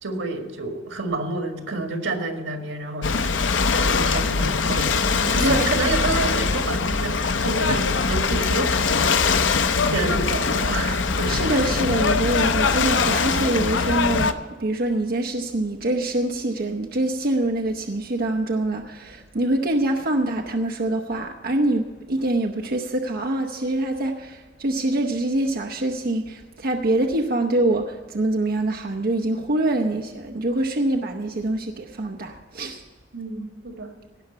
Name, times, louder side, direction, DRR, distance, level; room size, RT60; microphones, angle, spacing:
voice 1, 0.0-3.5 3.7-11.3 33.1-33.9, right 2 dB, 90° right, 4 dB, 1.9 m, -29 dB
Ocean / Boat Water vehicle, 3.0-14.3, left 4 dB, 75° left, 0.7 m, -22 dB
voice 2, 5.4-5.8 11.3-32.8, right 2 dB, 55° right, 4 dB, 0.8 m, -25 dB
17.5 x 5.8 x 8.0 m, 1.4 s
head